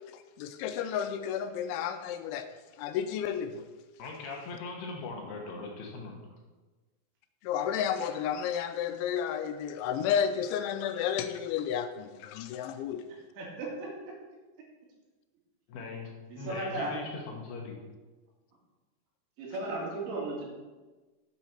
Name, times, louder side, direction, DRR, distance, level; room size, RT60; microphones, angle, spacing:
voice 1, 0.1-2.5 2.8-3.7 7.4-13.1, left 8 dB, 90° left, 9 dB, 3.1 m, -32 dB
voice 2, 4.0-6.2 15.7-16.1 16.4-17.8, left 3 dB, 70° left, 1 dB, 3.0 m, -40 dB
voice 3, 13.4-14.2 16.3-17.0 19.4-20.4, right 2 dB, 80° right, -3 dB, 4.7 m, -35 dB
9.5 x 8.1 x 4.4 m, 1.2 s
omnidirectional pair, 5.3 m